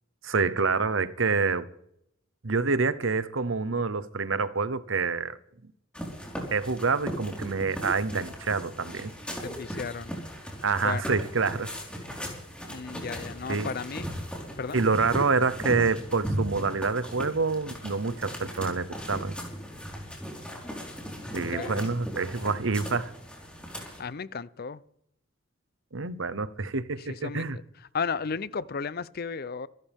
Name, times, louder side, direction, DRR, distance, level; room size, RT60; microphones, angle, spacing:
voice 1, 0.2-1.7 2.4-5.4 6.5-9.1 10.6-11.7 13.5-13.7 14.7-19.4 21.3-23.1 25.9-27.6, right 4 dB, 75° right, 0.9 m, -27 dB
sound 1, 5.9-24.0, equal, 5° left, 4.3 m, -38 dB
voice 2, 9.4-10.1 10.8-11.0 12.7-14.1 14.6-14.8 21.5-21.8 24.0-24.8 27.0-27.5 27.9-29.7, left 5 dB, 50° left, 0.6 m, -34 dB
26.5 x 12.0 x 3.6 m
head